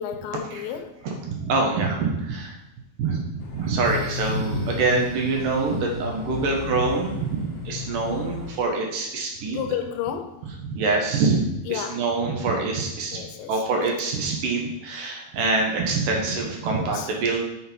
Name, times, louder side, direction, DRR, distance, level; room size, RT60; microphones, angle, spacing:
voice 1, 0.0-1.0 9.5-10.4 11.7-12.0 13.1-13.5 16.7-17.1, left 9 dB, 80° left, 7 dB, 2.4 m, -31 dB
voice 2, 1.0-2.6 3.0-9.6 10.6-17.4, right 3 dB, 65° right, 1 dB, 2.9 m, -25 dB
sound 1, 3.4-8.6, left 4 dB, 55° left, 1.9 m, -37 dB
sound 2, 3.8-8.4, left 5 dB, 30° left, 3.2 m, -35 dB
8.9 x 6.4 x 4.6 m, 0.89 s
omnidirectional pair, 4.2 m